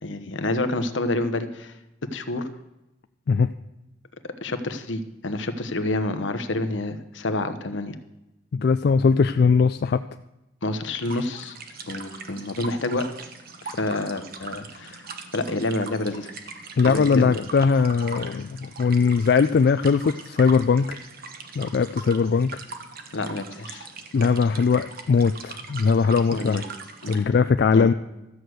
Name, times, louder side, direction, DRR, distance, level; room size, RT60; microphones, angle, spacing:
voice 1, 0.0-1.7 2.1-2.5 4.4-8.0 10.6-11.6 11.9-13.0 13.6-15.0 15.3-16.3 16.8-17.3 23.1-23.9 26.3-26.6 27.0-27.2 27.7-27.9, left 2 dB, 75° left, 9 dB, 1.0 m, -28 dB
voice 2, 8.5-10.0 16.8-21.0 21.6-22.5 24.1-26.6 27.1-27.9, left 5 dB, 55° left, 10 dB, 0.3 m, -20 dB
sound 1, 11.0-27.2, right 4 dB, 50° right, 1.1 m, -41 dB
13.0 x 6.4 x 7.8 m, 0.96 s
head